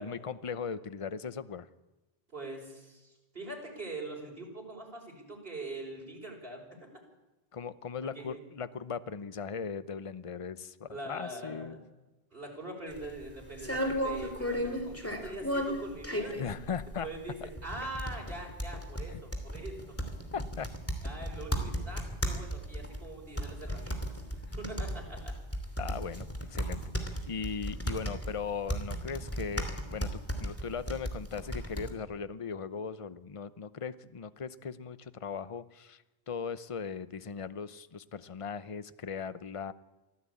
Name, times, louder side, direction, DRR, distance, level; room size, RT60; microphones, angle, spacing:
voice 1, 0.0-1.7 7.5-11.8 16.3-17.1 19.1-19.2 20.3-20.7 25.8-26.8 27.3-30.1 30.4-39.7, left 6 dB, 35° left, 14 dB, 0.8 m, -38 dB
voice 2, 2.3-6.7 8.1-8.4 10.9-11.8 12.3-16.4 17.0-20.0 21.0-25.3, right 2 dB, 65° right, 0 dB, 5.8 m, -43 dB
sound 1, 12.9-31.9, equal, 15° left, 2.9 m, -35 dB
24.5 x 15.5 x 8.6 m, 1.1 s
omnidirectional pair, 1.0 m